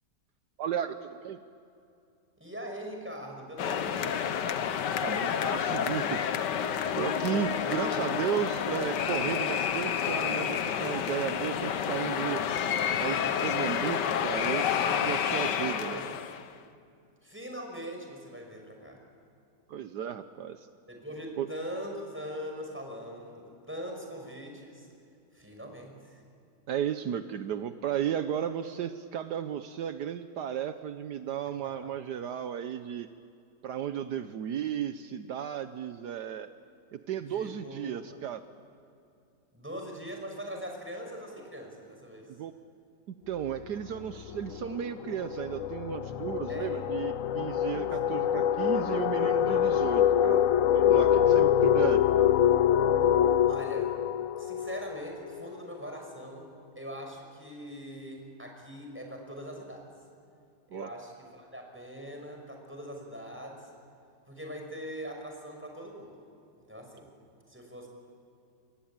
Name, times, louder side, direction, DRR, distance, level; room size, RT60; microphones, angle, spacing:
voice 1, 0.6-1.4 5.0-6.2 6.7-12.4 13.0-16.0 19.7-20.7 21.4-21.5 26.7-33.1 33.6-36.5 36.9-38.4 42.3-42.5 43.1-50.5 50.7-52.0 60.7-60.9, right 9 dB, 75° right, 10 dB, 1.4 m, -34 dB
voice 2, 2.4-4.3 5.6-6.1 7.3-7.5 14.7-14.9 15.4-16.1 17.2-19.0 20.9-24.9 25.3-26.2 31.6-31.9 37.3-38.2 39.5-42.3 46.5-46.8 48.1-48.3 51.0-51.6 53.5-54.0 54.4-59.9 60.7-63.7 64.3-66.1 66.7-67.1 67.5-67.9, equal, 5° right, 1 dB, 5.9 m, -42 dB
sound 1, 3.6-16.5, left 8 dB, 80° left, 1.7 m, -29 dB
sound 2, 43.4-43.7 44.0-55.5, left 9 dB, 60° left, 1.1 m, -25 dB
28.5 x 23.0 x 8.9 m, 2.6 s
omnidirectional pair, 1.8 m